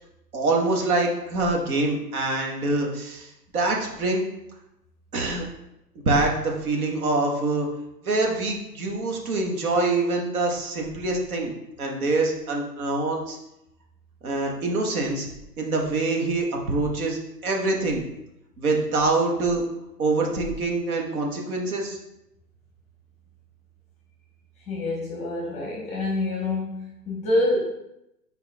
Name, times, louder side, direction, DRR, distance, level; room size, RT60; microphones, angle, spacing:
voice 1, 0.3-4.2 5.1-5.5 6.1-7.7 8.0-11.5 11.8-13.4 14.2-15.3 15.6-18.0 18.6-19.6 20.0-22.0, right 2 dB, 60° right, 0 dB, 1.8 m, -25 dB
voice 2, 24.7-27.6, left 2 dB, 15° left, -2 dB, 1.0 m, -26 dB
6.4 x 4.6 x 3.6 m, 0.86 s
hypercardioid pair, 135°, 50 cm